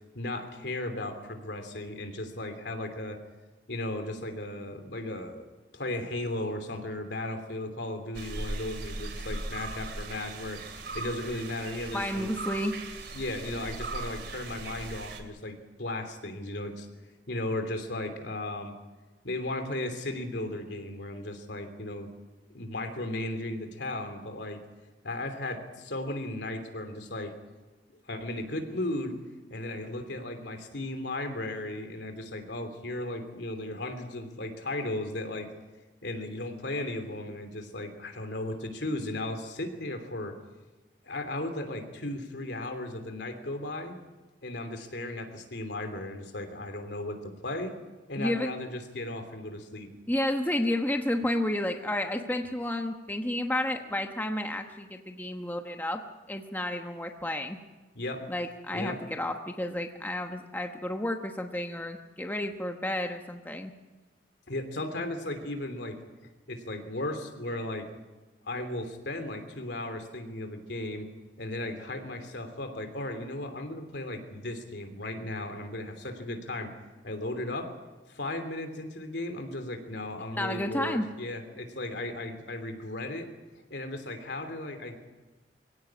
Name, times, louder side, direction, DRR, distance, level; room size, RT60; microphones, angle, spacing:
voice 1, 0.1-3.2 3.7-5.5 5.7-10.6 10.9-12.3 13.1-16.9 17.3-18.8 19.2-22.1 22.5-24.6 25.0-27.3 28.1-29.1 29.5-35.5 36.0-40.4 41.0-43.9 44.4-47.7 48.1-49.9 57.9-58.2 58.7-59.0 64.5-66.0 66.5-67.9 68.4-71.1 71.4-76.7 77.0-77.7 78.1-83.3 83.7-85.0, left 1 dB, 70° left, 7 dB, 3.0 m, -35 dB
sound 1, 8.1-15.2, right 2 dB, 65° right, 2.9 m, -39 dB
voice 2, 11.9-12.8 48.2-48.5 50.1-56.0 56.3-57.6 58.3-63.7 80.4-81.1, left 1 dB, 10° left, 4 dB, 1.1 m, -31 dB
23.5 x 17.0 x 8.7 m, 1.2 s
head